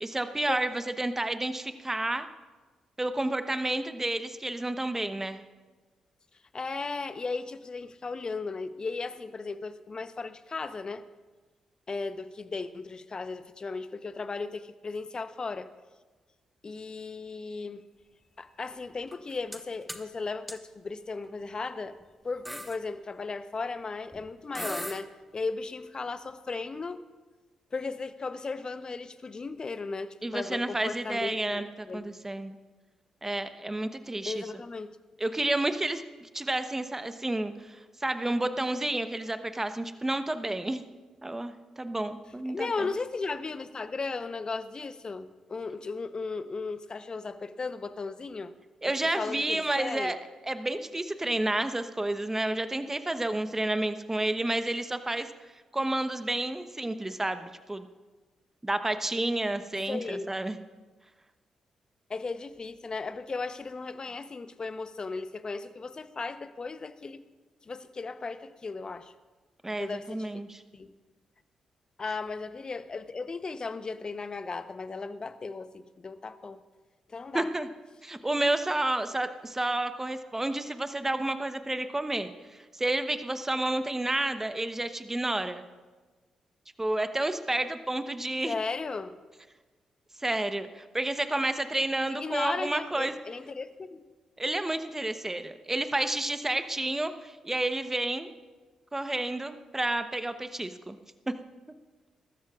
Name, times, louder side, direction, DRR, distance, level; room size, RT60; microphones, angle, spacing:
voice 1, 0.0-2.3 3.0-5.4 30.2-32.6 33.2-34.4 35.2-40.9 41.2-42.9 48.8-50.2 50.5-55.3 55.7-57.9 58.6-60.6 69.6-70.6 77.3-77.7 78.0-85.6 86.8-88.5 90.2-93.1 94.4-98.3 98.9-101.0 101.3-101.4, right 1 dB, 20° right, 10 dB, 1.0 m, -30 dB
voice 2, 6.5-11.0 11.9-15.7 16.6-17.8 18.4-22.0 22.2-27.0 27.7-32.2 34.2-35.0 42.5-48.5 49.2-50.1 59.9-60.3 62.1-67.2 67.6-69.1 69.8-70.4 70.7-70.9 72.0-76.6 77.1-77.5 88.5-89.2 92.1-94.0, left 4 dB, 40° left, 12 dB, 0.9 m, -36 dB
sound 1, 19.1-19.6 19.9-20.1 20.5-20.6 21.4-21.6 22.0-22.1 22.5-22.8 24.1-24.2 24.6-25.0, equal, ahead, 1.4 m, -37 dB
23.0 x 13.0 x 2.5 m, 1.3 s
hypercardioid pair, 40°, 2 cm